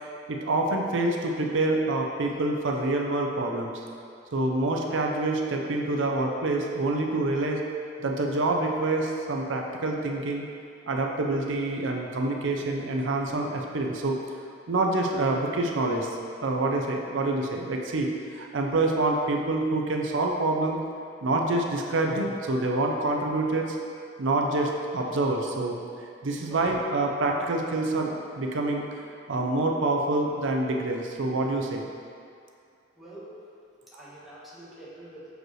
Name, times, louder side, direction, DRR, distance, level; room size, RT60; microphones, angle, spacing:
voice 1, 0.0-3.8 4.3-7.6 8.0-10.4 10.9-14.1 14.7-16.1 16.4-20.8 21.2-23.8 24.2-25.7 26.2-28.1 28.4-28.8 29.3-31.8, right 2 dB, 90° right, 1 dB, 0.5 m, -26 dB
voice 2, 26.4-26.8 32.9-33.3 33.9-35.3, right 1 dB, ahead, -10 dB, 1.3 m, -45 dB
6.2 x 5.0 x 3.1 m, 2.4 s
head